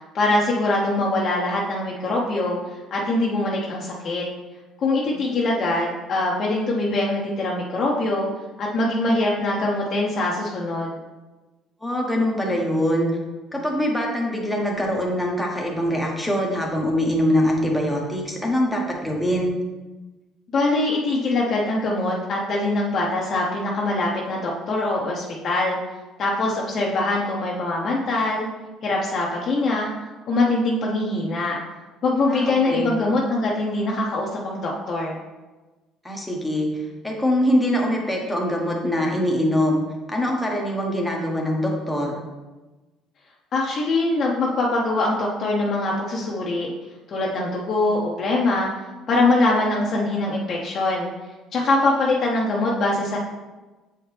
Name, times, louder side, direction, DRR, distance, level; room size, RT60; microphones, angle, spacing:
voice 1, 0.1-2.6 2.9-4.2 4.8-8.3 8.6-10.9 20.5-25.8 26.2-28.5 28.8-29.9 30.3-31.6 32.0-35.2 43.5-46.7 47.1-48.7 49.1-51.1 51.5-53.2, left 2 dB, 45° left, -3 dB, 0.9 m, -23 dB
voice 2, 11.8-13.1 13.5-19.5 32.3-32.8 36.0-42.2, equal, 5° left, -1 dB, 1.2 m, -23 dB
7.6 x 4.4 x 3.4 m, 1.2 s
cardioid pair, 130°, 0 cm